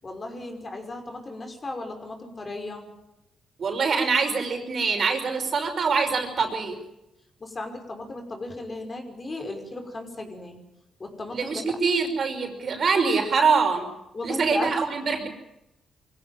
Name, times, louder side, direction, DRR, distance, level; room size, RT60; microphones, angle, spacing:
voice 1, 0.0-2.9 7.4-10.6 11.0-11.6 14.1-14.7, left 2 dB, 35° left, 4 dB, 5.6 m, -35 dB
voice 2, 3.6-6.8 11.3-13.9 14.2-15.3, right 5 dB, 55° right, 5 dB, 5.4 m, -24 dB
23.0 x 15.5 x 9.2 m, 0.88 s
cardioid pair, 80°, 0 cm